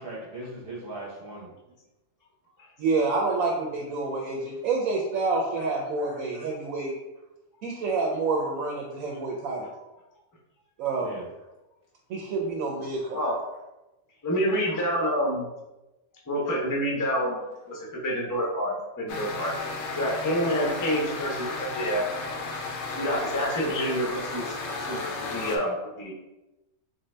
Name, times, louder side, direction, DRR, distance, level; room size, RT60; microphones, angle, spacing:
voice 1, 0.0-1.5 5.6-5.7 6.1-6.2 11.0-11.2 14.7-14.8 23.3-23.4, right 2 dB, 45° right, -4 dB, 0.9 m, -39 dB
voice 2, 2.8-6.9 7.6-9.7 10.8-11.2 12.1-13.2, right 3 dB, 75° right, 0 dB, 1.0 m, -28 dB
voice 3, 14.2-15.5 16.3-17.4 17.7-22.0 22.9-24.5 24.8-26.1, equal, 20° left, -3 dB, 0.6 m, -28 dB
sound 1, 19.1-25.6, left 3 dB, 65° left, 0.8 m, -34 dB
3.8 x 2.7 x 3.2 m, 1.0 s
omnidirectional pair, 1.5 m